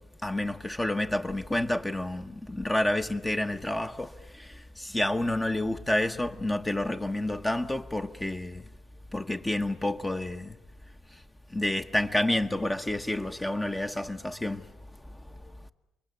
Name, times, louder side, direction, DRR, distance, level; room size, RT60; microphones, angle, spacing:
voice 1, 0.2-8.6 9.1-10.5 11.5-14.6, left 1 dB, 15° left, 1.1 m, -29 dB
28.5 x 22.5 x 8.5 m
cardioid pair, 90°, 0 cm